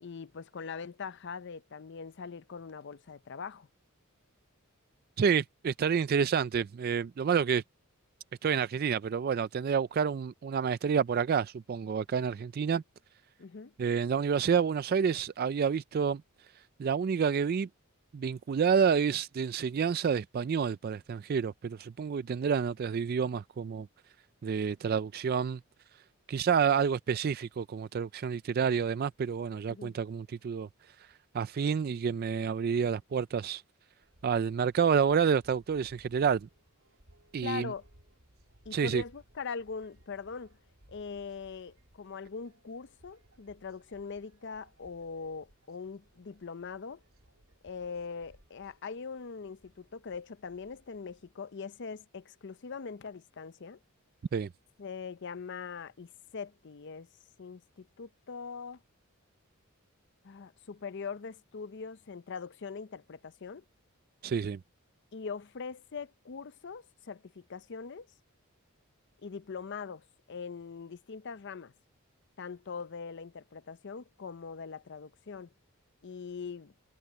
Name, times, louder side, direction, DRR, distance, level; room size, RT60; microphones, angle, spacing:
voice 1, 0.0-3.7 13.4-13.7 29.7-29.9 37.4-37.9 38.7-40.6 40.9-47.0 47.6-53.8 54.8-57.1 57.4-58.8 60.2-63.6 65.1-68.1 69.2-71.7 72.4-75.5 76.0-76.7, left 5 dB, 55° left, 0.6 m, -42 dB
voice 2, 5.2-7.6 8.4-12.8 13.8-16.2 16.8-17.7 18.1-23.9 24.4-25.6 26.3-30.7 31.3-33.6 34.2-36.5 37.3-37.7 38.7-39.0 54.3-54.5 64.2-64.6, right 6 dB, 45° right, 0.3 m, -29 dB
sound 1, 34.0-51.3, right 1 dB, 80° right, 2.9 m, -63 dB
head